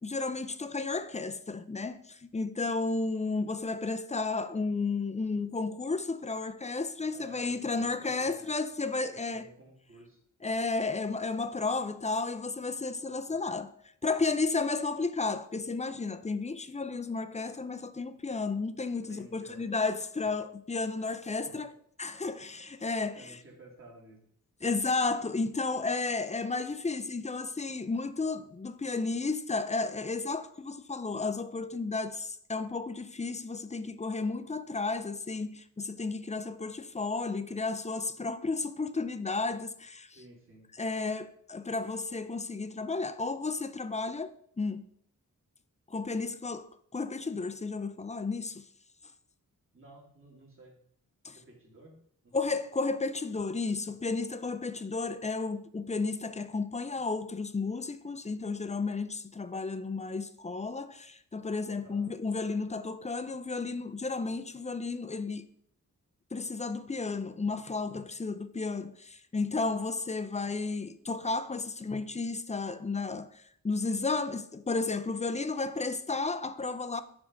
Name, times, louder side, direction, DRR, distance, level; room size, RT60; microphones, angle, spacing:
voice 1, 0.0-9.5 10.4-13.7 14.0-21.7 22.0-23.4 24.6-40.2 40.8-44.9 45.9-48.7 51.2-51.4 52.3-65.5 66.3-77.0, left 3 dB, 20° left, 0.5 m, -33 dB
voice 2, 7.1-8.6 9.1-10.2 10.5-10.6 13.3-13.4 19.1-19.7 20.2-20.3 21.4-21.7 23.1-24.2 40.1-40.7 49.7-50.8 51.3-52.0 52.2-52.3 61.8-62.1, right 1 dB, 40° right, 2.6 m, -53 dB
9.4 x 3.6 x 5.1 m
wide cardioid pair, 90°, 32 cm